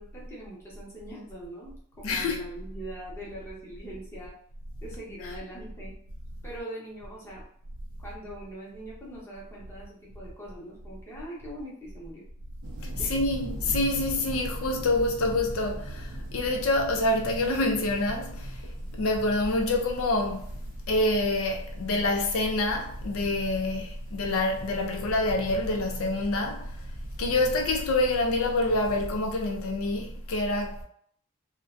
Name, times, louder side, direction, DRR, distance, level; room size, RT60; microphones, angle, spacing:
voice 1, 0.0-4.3 4.8-5.9 6.4-7.5 8.0-12.2 12.9-13.1, right 1 dB, 10° left, 0.7 m, -42 dB
voice 2, 2.0-2.4 12.8-20.5 20.9-26.8 27.2-30.8, left 2 dB, 70° left, 0.4 m, -27 dB
sound 1, 12.6-29.2, right 1 dB, 70° right, 0.4 m, -41 dB
2.4 x 2.1 x 2.4 m
head